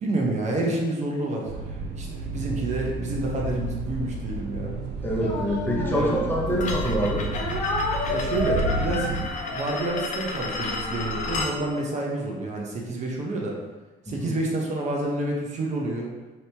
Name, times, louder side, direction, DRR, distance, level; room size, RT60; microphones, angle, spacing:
voice 1, 0.0-4.8 5.9-6.3 8.1-9.1 9.4-13.6 14.1-16.1, right 2 dB, 45° right, -1 dB, 0.7 m, -29 dB
sound 1, 1.5-9.3, right 2 dB, 80° right, 0.5 m, -31 dB
voice 2, 5.0-7.3 14.1-14.3, equal, 10° left, -4 dB, 0.7 m, -26 dB
Speech, 5.1-6.7 7.3-11.4, left 2 dB, 80° left, 1.0 m, -32 dB
sound 2, 6.6-11.6, left 3 dB, 45° left, 0.5 m, -33 dB
2.9 x 2.8 x 3.3 m, 1.2 s
cardioid pair, 110°, 17 cm